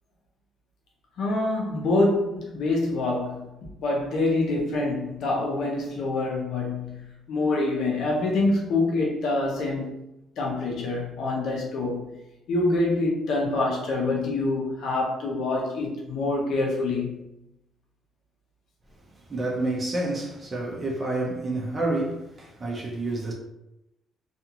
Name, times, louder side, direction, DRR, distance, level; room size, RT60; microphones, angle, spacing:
voice 1, 1.2-3.5 3.8-7.0 7.3-10.0 10.4-12.2 12.5-17.1, left 2 dB, 70° left, 0.8 m, -26 dB
voice 2, 19.3-23.3, right 2 dB, 25° right, 0.7 m, -29 dB
2.5 x 2.3 x 2.9 m
cardioid pair, 105°, 0 cm